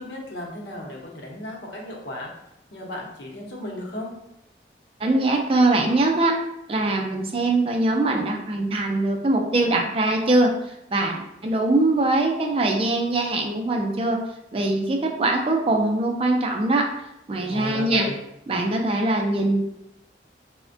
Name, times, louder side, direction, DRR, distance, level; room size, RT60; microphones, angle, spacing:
voice 1, 0.0-2.3 2.7-4.1 17.5-18.2, left 1 dB, 85° left, -2 dB, 0.7 m, -34 dB
voice 2, 5.0-6.4 6.7-10.5 10.9-14.2 14.5-16.9 17.3-18.1 18.5-19.6, right 2 dB, 30° right, 2 dB, 0.3 m, -22 dB
3.3 x 2.1 x 2.5 m, 0.82 s
head